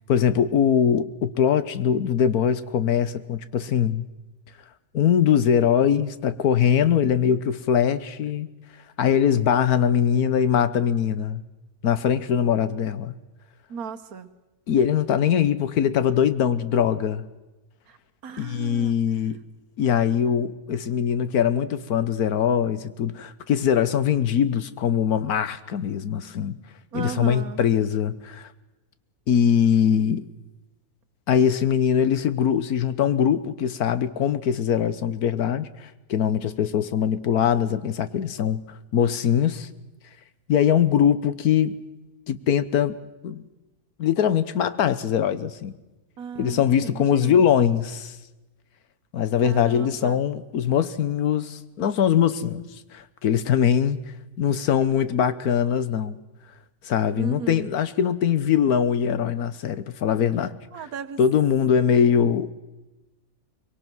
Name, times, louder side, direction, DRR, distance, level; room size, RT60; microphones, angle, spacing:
voice 1, 0.1-4.1 4.9-8.5 9.0-11.4 11.8-13.1 14.7-17.2 18.4-19.4 19.8-26.6 26.9-28.5 29.3-30.3 31.3-38.6 38.9-39.7 40.5-41.7 42.3-42.9 43.2-43.4 44.0-45.7 46.4-48.2 49.1-54.0 54.4-56.2 56.8-60.6 61.2-62.5, left 8 dB, 75° left, 1.5 m, -22 dB
voice 2, 13.7-14.3 17.9-18.0 18.2-19.0 26.9-27.6 42.4-42.5 46.2-47.4 49.4-50.2 57.1-57.7 60.7-61.2, right 6 dB, 70° right, 1.6 m, -36 dB
23.5 x 22.5 x 6.2 m
omnidirectional pair, 1.6 m